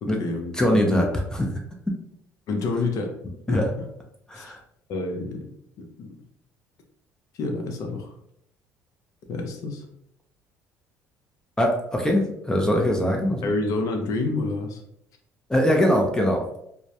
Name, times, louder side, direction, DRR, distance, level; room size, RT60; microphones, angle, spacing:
voice 1, 0.0-1.1 2.5-3.1 3.5-3.9 4.3-4.5 4.9-5.5 5.8-6.1 7.3-8.1 9.3-9.8 13.4-14.8, left 3 dB, 65° left, 3 dB, 0.5 m, -28 dB
voice 2, 0.6-1.6 3.5-3.7 4.3-4.6 11.6-13.5 15.5-16.4, equal, 10° left, 1 dB, 0.4 m, -22 dB
2.2 x 2.0 x 2.8 m, 0.75 s
supercardioid pair, 90°, 6 cm